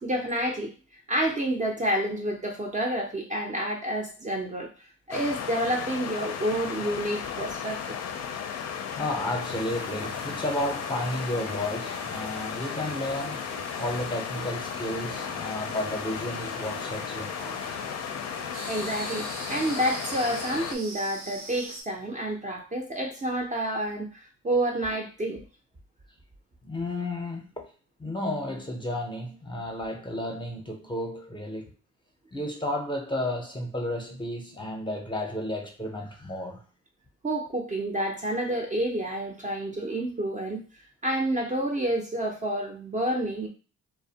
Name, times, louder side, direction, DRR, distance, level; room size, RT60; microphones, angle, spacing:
voice 1, 0.0-0.7 1.1-4.7 5.1-8.0 18.7-24.1 24.4-25.4 37.2-40.6 41.0-43.5, right 1 dB, 25° right, 1 dB, 0.5 m, -29 dB
sound 1, 5.1-20.8, left 7 dB, 60° left, 0.4 m, -35 dB
voice 2, 9.0-13.4 13.8-17.8 26.6-27.6 28.0-31.7 32.3-36.6, left 1 dB, 15° left, 2 dB, 0.6 m, -32 dB
sound 2, 9.4-21.8, right 2 dB, 85° right, 0.9 m, -43 dB
2.4 x 2.0 x 2.7 m, 0.37 s
cardioid pair, 90°, 30 cm